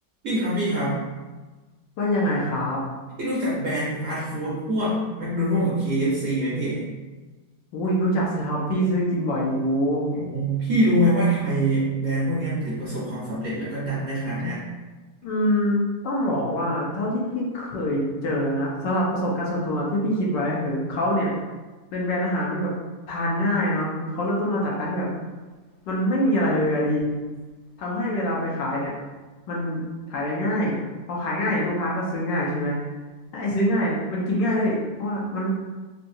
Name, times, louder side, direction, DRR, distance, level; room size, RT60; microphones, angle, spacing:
voice 1, 0.2-1.0 3.2-6.9 10.1-14.6, right 1 dB, 55° right, -8 dB, 0.9 m, -24 dB
voice 2, 2.0-2.8 7.7-10.1 15.2-21.3 21.9-22.7 23.1-25.2 25.9-27.1 27.8-28.9 29.5-29.8 30.1-30.8 31.1-32.8 33.3-35.5, equal, 70° left, -4 dB, 1.3 m, -24 dB
4.0 x 2.3 x 2.6 m, 1.3 s
omnidirectional pair, 2.1 m